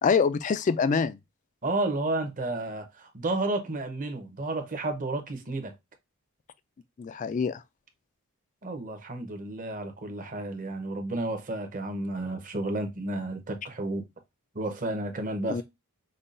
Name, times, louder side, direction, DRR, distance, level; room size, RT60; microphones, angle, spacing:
voice 1, 0.0-1.2 7.0-7.6 15.5-15.6, left 5 dB, 35° left, 0.3 m, -25 dB
voice 2, 1.6-5.7 8.6-14.1 14.5-15.6, right 2 dB, 35° right, 0.8 m, -31 dB
5.4 x 2.3 x 2.5 m
head